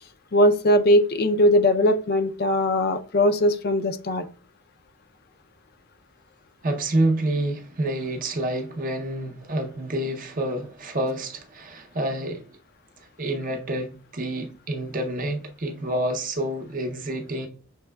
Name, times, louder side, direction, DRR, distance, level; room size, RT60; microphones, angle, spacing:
voice 1, 0.3-4.2, left 1 dB, 45° left, 0.4 m, -20 dB
voice 2, 6.6-12.6 13.0-17.5, right 1 dB, 40° right, 0.6 m, -28 dB
5.8 x 3.0 x 2.2 m
head